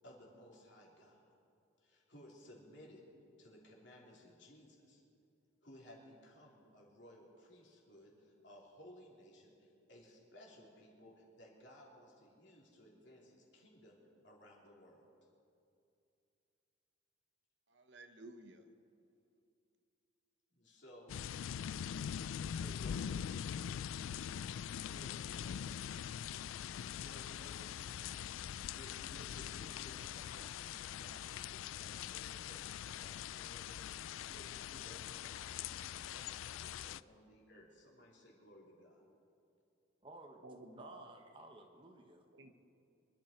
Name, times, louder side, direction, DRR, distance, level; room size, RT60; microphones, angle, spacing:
voice 1, 0.0-1.3 1.8-3.0 3.4-5.0 5.6-14.0 14.2-15.1 20.5-21.2 22.5-23.6 24.9-26.2 27.0-28.1 28.5-39.0, equal, 60° left, -3 dB, 3.4 m, -59 dB
voice 2, 17.7-18.7 40.4-41.1 42.3-42.5, right 2 dB, 60° right, 7 dB, 1.0 m, -54 dB
sound 1, 21.1-37.0, left 9 dB, 75° left, 0.3 m, -43 dB
voice 3, 40.0-40.4 40.7-42.2, right 2 dB, 25° right, 4 dB, 1.1 m, -55 dB
24.5 x 12.0 x 4.5 m, 2.6 s
head